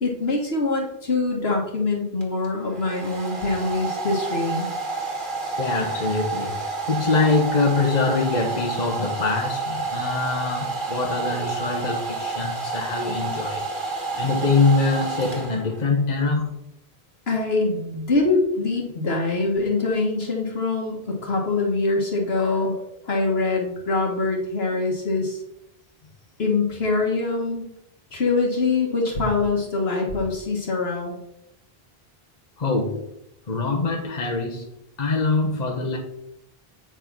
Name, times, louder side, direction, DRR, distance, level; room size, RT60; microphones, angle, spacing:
voice 1, 0.0-4.7 17.3-25.4 26.4-27.6 28.1-31.2, left 3 dB, 75° left, 1.6 m, -24 dB
Domestic sounds home sounds, 2.2-15.9, right 4 dB, 50° right, 1.9 m, -29 dB
voice 2, 5.6-13.6 14.2-16.5 32.6-33.0 33.5-34.6 35.0-36.0, left 3 dB, 45° left, 1.1 m, -24 dB
8.3 x 4.5 x 6.0 m
omnidirectional pair, 1.1 m